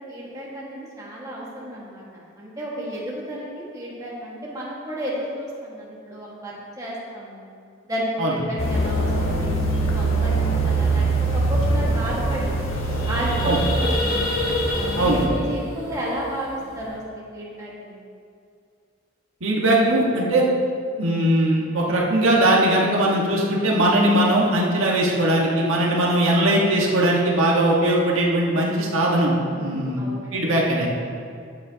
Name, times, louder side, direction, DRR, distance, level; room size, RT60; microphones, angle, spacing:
voice 1, 0.1-7.4 7.8-11.1 11.3-12.5 13.1-14.2 14.7-18.0 29.5-30.4, equal, 15° right, -6 dB, 1.7 m, -32 dB
sound 1, 8.6-15.3, right 2 dB, 70° left, 1.4 m, -23 dB
sound 2, 12.7-16.9, left 2 dB, 45° left, 2.6 m, -29 dB
voice 2, 19.4-20.4 21.0-30.0 30.3-30.9, right 1 dB, 75° right, -3 dB, 1.5 m, -20 dB
13.0 x 8.6 x 2.9 m, 2.3 s
head